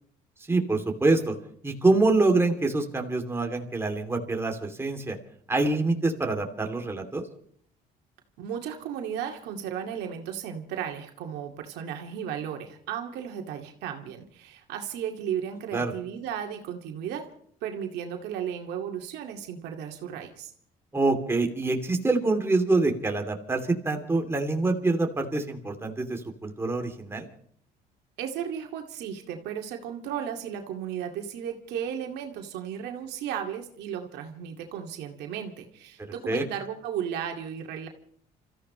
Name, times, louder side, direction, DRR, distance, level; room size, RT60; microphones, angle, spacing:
voice 1, 0.5-1.3 1.6-5.2 5.5-7.2 15.7-15.9 20.9-27.3 36.3-36.4, right 3 dB, 15° right, 3 dB, 2.8 m, -25 dB
voice 2, 8.4-17.3 17.6-20.5 28.2-37.9, right 9 dB, 85° right, 3 dB, 2.2 m, -35 dB
29.5 x 14.5 x 3.2 m, 0.63 s
cardioid pair, 110°, 17 cm